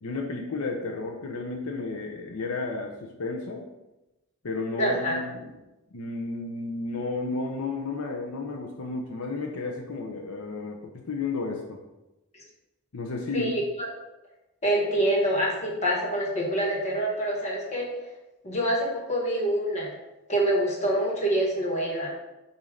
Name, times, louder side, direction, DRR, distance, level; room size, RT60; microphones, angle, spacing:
voice 1, 0.0-3.6 4.4-5.5 5.9-11.8 12.9-13.5, left 3 dB, 80° left, 2 dB, 0.7 m, -32 dB
voice 2, 4.8-5.2 13.3-13.5 14.6-17.9 18.4-19.9 20.3-22.1, right 1 dB, 30° left, -2 dB, 1.4 m, -26 dB
7.1 x 2.7 x 5.0 m, 0.99 s
head